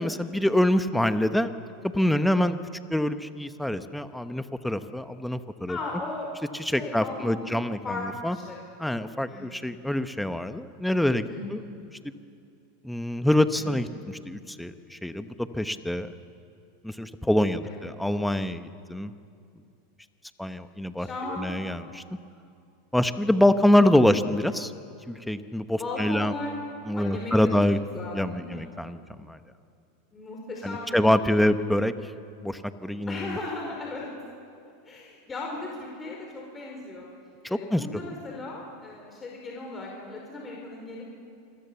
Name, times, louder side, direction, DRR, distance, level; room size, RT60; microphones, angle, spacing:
voice 1, 0.0-1.5 1.8-2.6 2.9-5.8 6.6-8.4 8.8-11.6 12.0-12.1 12.8-13.9 14.3-16.1 16.8-19.1 20.4-21.1 21.4-22.0 22.9-24.7 25.1-26.3 26.9-27.8 28.1-29.0 29.3-29.4 30.6-31.9 32.4-33.4 37.4-37.8, left 1 dB, 5° left, 10 dB, 1.2 m, -25 dB
voice 2, 5.7-8.6 9.3-9.7 11.3-11.7 13.6-13.8 17.6-17.9 21.0-21.6 25.8-26.5 26.9-27.6 27.9-28.6 30.1-31.5 33.1-34.1 34.8-37.1 37.5-41.0, left 2 dB, 20° left, -1 dB, 5.1 m, -37 dB
27.5 x 22.5 x 7.1 m, 2.5 s
hypercardioid pair, 100°, 0 cm